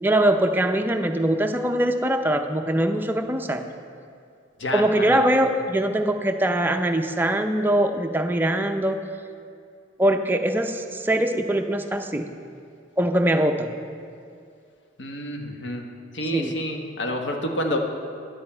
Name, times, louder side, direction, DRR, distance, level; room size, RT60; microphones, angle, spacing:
voice 1, 0.0-3.6 4.7-9.0 10.0-12.3 13.0-13.7 16.3-16.6, right 1 dB, 10° right, 5 dB, 0.5 m, -22 dB
voice 2, 4.6-5.2 15.0-17.8, left 1 dB, 70° left, 3 dB, 1.1 m, -29 dB
10.5 x 9.2 x 4.3 m, 2.4 s
head